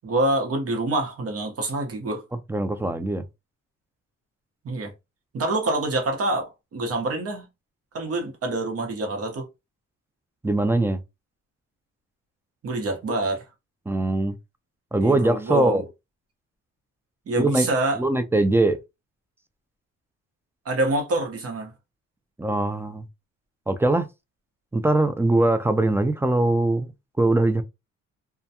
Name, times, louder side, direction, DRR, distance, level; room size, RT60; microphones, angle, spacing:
voice 1, 0.0-2.2 4.6-4.9 5.3-7.5 7.9-9.5 12.6-13.4 15.0-15.9 17.3-18.0 20.6-21.7, right 2 dB, 50° right, 1.0 m, -26 dB
voice 2, 2.5-3.2 10.4-11.0 13.9-14.4 14.9-15.8 17.4-17.7 18.0-18.8 22.4-23.0 23.7-24.1 24.7-26.9 27.2-27.6, right 2 dB, 10° right, 0.3 m, -21 dB
2.3 x 2.2 x 2.7 m
cardioid pair, 90°, 30 cm